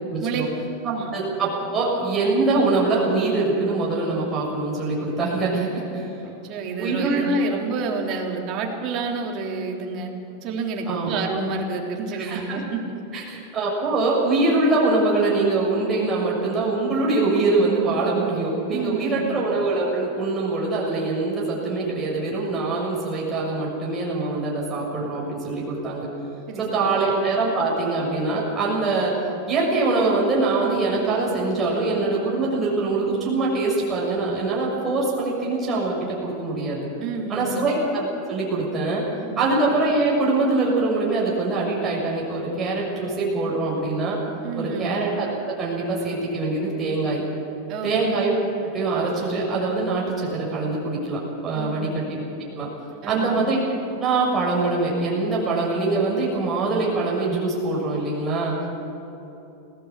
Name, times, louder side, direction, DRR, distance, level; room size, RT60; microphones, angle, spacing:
voice 1, 0.1-0.5 1.1-6.1 6.8-7.3 10.8-11.1 12.2-12.6 13.1-26.1 26.6-29.1 29.5-36.9 37.3-39.0 39.4-44.2 44.6-47.2 47.8-48.4 48.7-52.0 52.6-52.7 53.1-53.6 54.0-58.5, right 3 dB, 20° right, -5 dB, 6.6 m, -23 dB
voice 2, 6.2-10.1 10.4-12.8 13.1-13.3 18.7-19.3 26.5-26.9 37.0-37.6 39.2-39.5 44.4-44.9 47.7-48.0 51.5-51.9 53.0-53.4, right 4 dB, 40° right, 1 dB, 3.5 m, -29 dB
20.0 x 17.0 x 8.5 m, 3.0 s
supercardioid pair, 150°, 0 cm